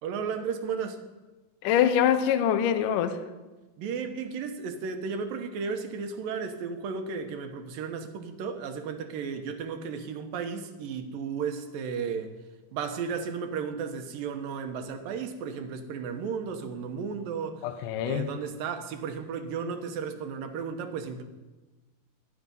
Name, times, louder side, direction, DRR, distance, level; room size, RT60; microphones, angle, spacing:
voice 1, 0.0-1.0 3.8-12.3 12.7-17.7 18.0-21.2, right 6 dB, 70° right, 7 dB, 2.7 m, -34 dB
voice 2, 1.6-3.2 17.6-18.3, left 9 dB, 70° left, 10 dB, 2.2 m, -24 dB
20.5 x 11.0 x 5.4 m, 1.2 s
omnidirectional pair, 4.4 m